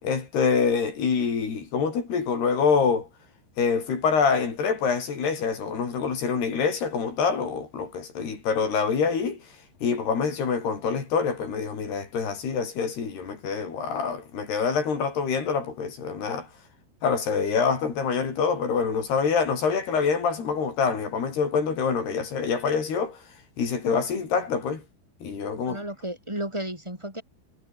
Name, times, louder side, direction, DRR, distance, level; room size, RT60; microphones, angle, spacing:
voice 1, 0.0-3.1 3.6-9.4 9.8-16.5 17.0-23.2 23.6-24.8 25.2-25.8, left 5 dB, 55° left, 6.7 m, -26 dB
voice 2, 25.7-27.2, right 1 dB, 5° right, 7.0 m, -33 dB
omnidirectional pair, 5.6 m